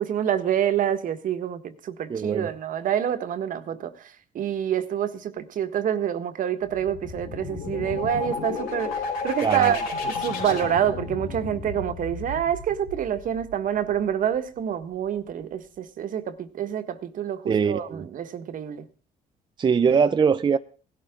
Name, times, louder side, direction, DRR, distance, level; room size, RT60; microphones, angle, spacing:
voice 1, 0.0-4.1 4.3-18.8, right 9 dB, 60° right, 1.6 m, -27 dB
voice 2, 2.1-2.5 9.4-9.8 17.5-18.0 19.6-20.6, right 6 dB, 30° right, 0.6 m, -22 dB
sound 1, 6.6-14.2, left 4 dB, 90° left, 4.7 m, -33 dB
17.5 x 12.0 x 3.8 m
cardioid pair, 105°, 15 cm